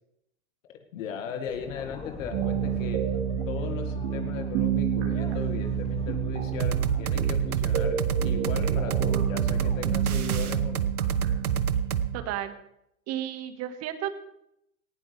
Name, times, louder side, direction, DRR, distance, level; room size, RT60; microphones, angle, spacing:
voice 1, 0.9-3.0 3.5-10.9, left 7 dB, 65° left, 5 dB, 2.0 m, -37 dB
sound 1, 1.5-10.5, left 3 dB, 15° left, 1.8 m, -44 dB
sound 2, 2.3-12.2, right 9 dB, 55° right, 3.5 m, -30 dB
sound 3, 6.6-12.1, right 8 dB, 85° right, 1.0 m, -27 dB
voice 2, 12.1-12.5 13.1-14.1, right 11 dB, 35° right, 9 dB, 1.7 m, -32 dB
18.5 x 16.0 x 3.4 m, 0.81 s
hypercardioid pair, 105°, 43 cm